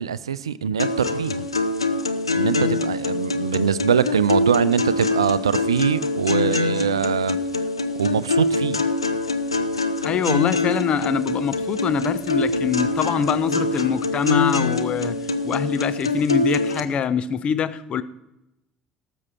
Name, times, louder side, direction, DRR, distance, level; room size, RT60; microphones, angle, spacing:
voice 1, 0.0-1.5 2.3-7.4 8.0-8.8, right 7 dB, 80° right, 0.4 m, -23 dB
sound 1, 0.8-16.8, left 3 dB, 85° left, 0.7 m, -24 dB
voice 2, 10.0-15.2 15.4-18.0, left 7 dB, 45° left, 0.8 m, -24 dB
18.0 x 7.2 x 4.3 m
figure-of-eight pair, 60°, 3 cm